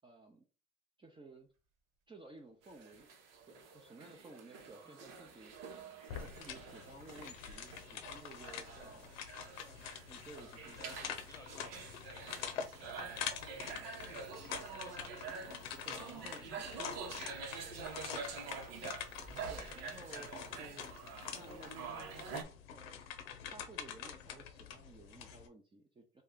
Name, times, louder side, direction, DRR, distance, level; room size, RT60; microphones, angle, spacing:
voice 1, 0.0-0.4 1.0-1.5 2.1-3.1 3.5-5.6 5.9-9.2 9.6-11.2 15.7-17.0 19.5-20.3 20.6-20.9 21.3-22.3 22.7-23.0 23.5-26.2, right 2 dB, 15° right, 1 dB, 0.6 m, -55 dB
sound 1, 1.5-20.8, right 4 dB, 60° right, 1.4 m, -62 dB
sound 2, 2.6-22.4, right 5 dB, 80° right, 0.9 m, -47 dB
sound 3, 6.1-25.5, left 8 dB, 85° left, 0.7 m, -46 dB
voice 2, 10.8-13.2 13.5-13.8 14.2-15.2 16.0-18.8, left 2 dB, 10° left, 3 dB, 1.0 m, -59 dB
3.1 x 2.3 x 3.7 m, 0.33 s
hypercardioid pair, 85°, 29 cm